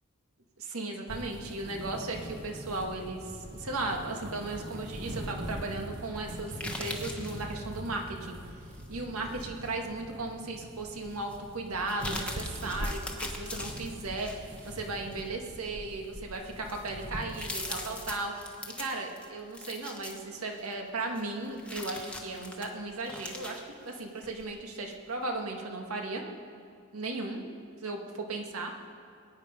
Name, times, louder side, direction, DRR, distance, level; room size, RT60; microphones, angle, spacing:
voice 1, 0.6-8.4 8.9-18.4 18.8-26.2 26.9-27.4 27.8-28.7, right 2 dB, 90° right, 2 dB, 1.7 m, -36 dB
sound 1, 1.1-18.1, equal, 55° right, 1.3 m, -42 dB
sound 2, 6.5-7.4 8.7-9.7 10.2-10.3 11.2-11.4 11.8-14.7 15.1-15.4 16.0-16.1 16.5-20.7 21.2-24.5 24.8-24.9, left 2 dB, 5° left, 1.1 m, -41 dB
21.5 x 9.4 x 5.2 m, 2.2 s
head